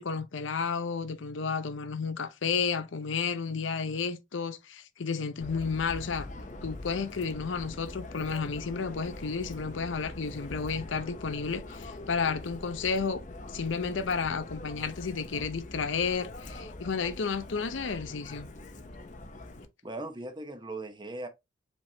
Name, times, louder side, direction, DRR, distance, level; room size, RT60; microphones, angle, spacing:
voice 1, 0.0-6.3 6.6-13.2 13.5-18.5, left 5 dB, 80° left, 0.6 m, -32 dB
Subway metro underground, 5.4-19.7, left 2 dB, 40° left, 0.7 m, -43 dB
voice 2, 19.8-21.3, right 2 dB, 25° right, 0.7 m, -38 dB
5.1 x 3.5 x 2.7 m
head